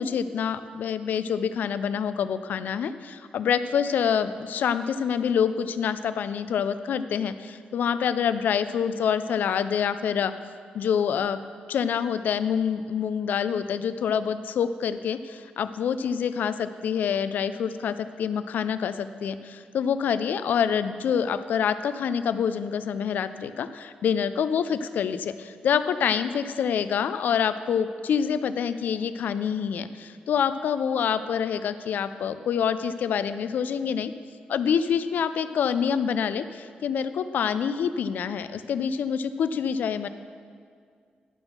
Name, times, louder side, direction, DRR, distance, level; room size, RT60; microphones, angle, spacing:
voice 1, 0.0-10.3 10.7-11.4 11.7-34.1 34.5-40.1, left 7 dB, 75° left, 12 dB, 0.4 m, -26 dB
11.5 x 4.4 x 6.5 m, 2.1 s
wide cardioid pair, 145°, 3 cm